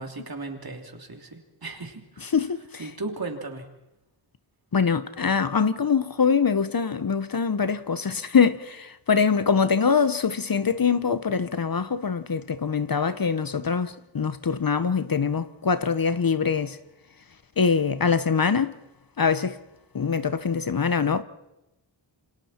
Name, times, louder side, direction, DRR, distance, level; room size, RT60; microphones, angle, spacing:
voice 1, 0.0-2.3 2.8-3.7, right 3 dB, 50° right, 3.2 m, -36 dB
voice 2, 2.3-2.8 4.7-16.8 17.6-18.8 19.2-19.6 19.9-21.2, left 6 dB, 45° left, 0.9 m, -23 dB
28.5 x 26.0 x 4.4 m
wide cardioid pair, 90°, 47 cm